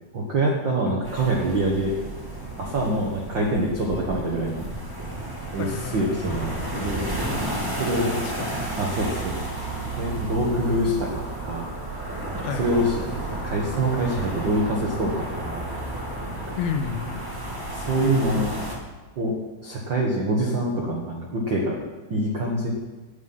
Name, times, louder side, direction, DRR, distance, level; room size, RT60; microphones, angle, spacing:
voice 1, 0.1-2.0 2.6-4.6 5.5-7.1 7.8-8.1 8.8-9.4 10.0-11.7 12.4-12.9 13.4-15.6 16.3-16.6 17.7-18.5 19.1-19.3 19.6-21.8 22.1-22.7, right 1 dB, 85° right, -2 dB, 1.0 m, -25 dB
sound 1, 1.0-18.7, right 1 dB, 30° right, 0.4 m, -32 dB
voice 2, 5.5-6.2 7.9-8.7 12.4-13.0 16.6-17.2, left 6 dB, 75° left, 5 dB, 2.8 m, -32 dB
12.5 x 10.0 x 5.6 m, 1.2 s
omnidirectional pair, 4.7 m